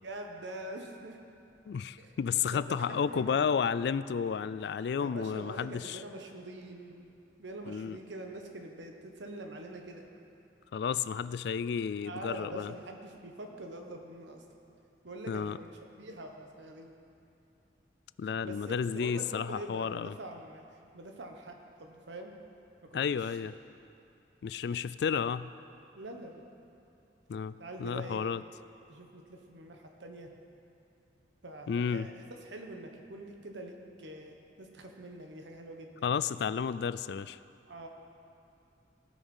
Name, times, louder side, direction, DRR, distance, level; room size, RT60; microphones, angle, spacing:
voice 1, 0.0-1.2 2.0-2.1 2.4-3.4 4.1-4.4 5.0-7.1 7.4-10.1 12.0-14.4 15.0-16.9 18.4-20.6 20.9-22.3 22.8-23.5 25.9-26.4 27.6-28.2 28.9-30.3 31.4-32.1 32.4-36.0 37.7-37.9, right 1 dB, 85° right, 3 dB, 1.3 m, -45 dB
voice 2, 1.7-6.0 7.7-8.0 10.7-12.7 15.3-15.6 18.2-20.1 22.9-23.5 24.4-25.5 27.3-28.4 31.7-32.1 36.0-37.4, left 6 dB, 65° left, 15 dB, 0.3 m, -32 dB
17.5 x 6.3 x 5.5 m, 2.8 s
head